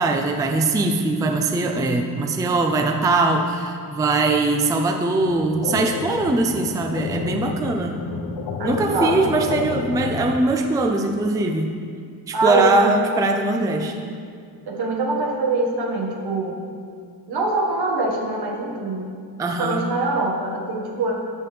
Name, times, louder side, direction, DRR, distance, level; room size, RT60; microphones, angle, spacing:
voice 1, 0.0-8.0 8.6-11.7 12.3-14.1 19.4-19.8, right 2 dB, 10° right, 3 dB, 0.4 m, -21 dB
sound 1, 5.2-10.4, left 5 dB, 80° left, 0.8 m, -31 dB
voice 2, 8.6-9.3 12.3-12.9 13.7-14.1 14.7-16.6 17.3-19.1 19.6-21.2, right 2 dB, 70° right, -1 dB, 1.6 m, -24 dB
11.5 x 6.9 x 3.2 m, 2.2 s
cardioid pair, 140°, 40 cm